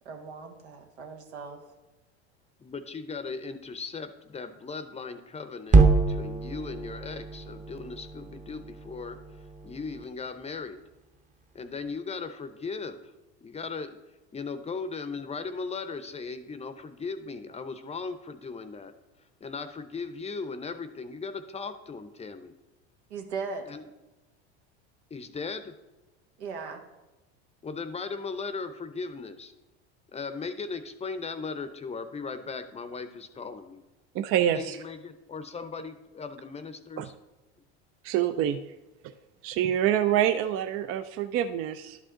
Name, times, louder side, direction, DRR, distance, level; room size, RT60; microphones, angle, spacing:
voice 1, 0.0-1.6 23.1-23.7 26.4-26.8, right 5 dB, 90° right, 3 dB, 1.5 m, -38 dB
voice 2, 2.6-9.2 9.6-10.8 11.5-13.0 13.4-14.0 14.3-18.9 19.4-22.5 23.7-23.8 25.1-25.7 27.6-29.5 30.1-33.8 34.5-37.1, left 4 dB, 20° left, 10 dB, 0.7 m, -37 dB
sound 1, 5.7-10.0, right 3 dB, 20° right, 0.9 m, -25 dB
voice 3, 34.1-34.8 37.0-37.1 38.0-38.6 39.4-42.0, right 10 dB, 45° right, 10 dB, 0.5 m, -26 dB
11.0 x 5.2 x 3.7 m, 1.1 s
hypercardioid pair, 95°, 33 cm